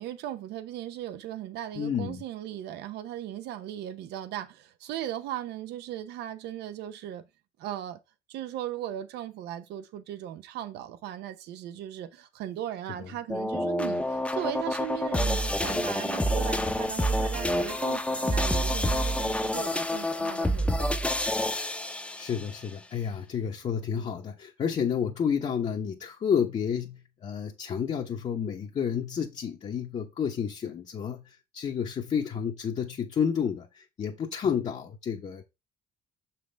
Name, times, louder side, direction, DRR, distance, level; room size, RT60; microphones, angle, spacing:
voice 1, 0.0-7.3 7.6-8.0 8.3-20.9, right 11 dB, 80° right, 0.9 m, -37 dB
voice 2, 1.7-2.2 13.0-13.1 22.2-35.4, left 7 dB, 40° left, 1.0 m, -30 dB
sound 1, 13.3-22.5, equal, 5° left, 0.8 m, -28 dB
6.3 x 5.8 x 3.4 m
cardioid pair, 110°, 17 cm